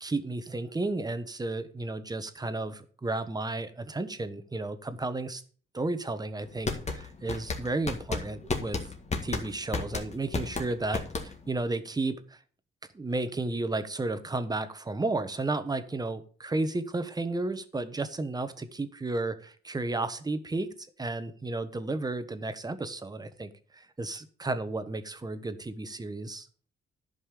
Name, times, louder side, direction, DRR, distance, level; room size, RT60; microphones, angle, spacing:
voice 1, 0.0-5.4 5.7-8.9 9.2-12.4 12.9-26.5, right 2 dB, 20° right, 11 dB, 1.2 m, -33 dB
sound 1, 6.4-11.6, left 3 dB, 35° left, 1.9 m, -32 dB
11.0 x 5.5 x 6.6 m, 0.42 s
cardioid pair, 90°, 20 cm